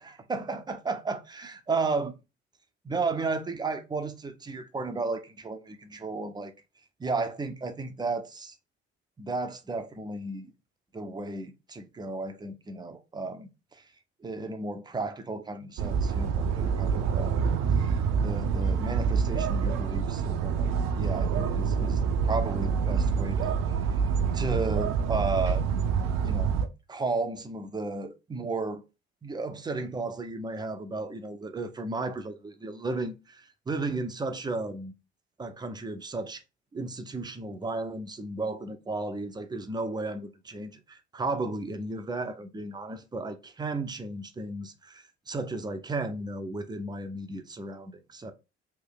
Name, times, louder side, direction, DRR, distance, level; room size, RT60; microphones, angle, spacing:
voice 1, 0.0-2.1 2.8-6.5 7.0-8.6 9.2-10.5 10.9-13.8 14.2-17.4 17.7-23.8 24.3-25.6 26.2-26.5 26.9-28.8 29.2-34.9 35.4-36.4 36.7-48.3, right 3 dB, 15° right, 0.6 m, -34 dB
sound 1, 15.8-26.7, right 6 dB, 55° right, 0.6 m, -26 dB
3.3 x 2.7 x 3.8 m
figure-of-eight pair, 55°, 32 cm